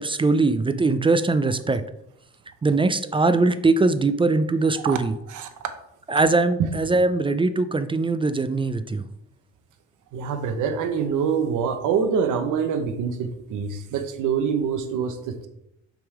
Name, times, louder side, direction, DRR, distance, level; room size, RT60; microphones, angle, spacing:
voice 1, 0.0-1.8 2.6-5.1 6.1-9.0, right 3 dB, 20° right, 12 dB, 0.3 m, -21 dB
voice 2, 10.1-15.5, right 6 dB, 85° right, 9 dB, 0.8 m, -25 dB
5.8 x 3.6 x 4.7 m, 0.79 s
cardioid pair, 90°, 30 cm